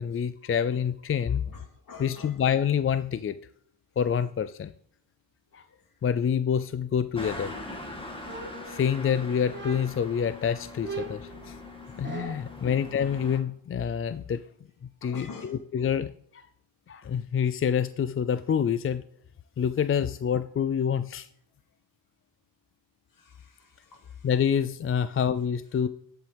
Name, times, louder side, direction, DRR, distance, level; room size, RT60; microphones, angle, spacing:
voice 1, 0.0-1.4 2.0-3.3 4.0-4.7 5.5-5.6 6.0-7.5 8.7-11.6 12.0-14.4 15.0-16.4 16.9-19.0 19.6-21.3 24.2-25.9, left 8 dB, 30° left, 13 dB, 0.4 m, -27 dB
voice 2, 1.5-2.4 12.6-12.8 15.0-15.5 17.0-17.2 23.2-24.1, left 4 dB, 45° left, 3 dB, 2.6 m, -46 dB
sound 1, 7.1-13.4, left 2 dB, 10° left, 2.1 m, -42 dB
sound 2, 8.2-9.1 9.5-10.1 10.8-12.6, right 3 dB, 25° right, 1.7 m, -39 dB
12.5 x 7.9 x 3.4 m, 0.68 s
cardioid pair, 75°, 44 cm